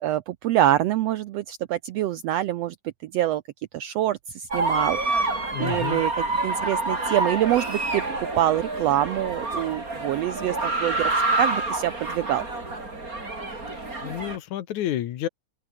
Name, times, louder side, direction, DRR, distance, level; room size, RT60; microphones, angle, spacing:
voice 1, 0.0-2.7 3.0-3.4 3.7-8.0 8.3-12.4, right 13 dB, 80° right, 1.5 m, -25 dB
sound 1, 4.5-14.4, right 2 dB, 25° right, 5.5 m, -27 dB
voice 2, 5.5-6.0 14.0-15.3, left 12 dB, 70° left, 2.6 m, -29 dB
open air
omnidirectional pair, 3.6 m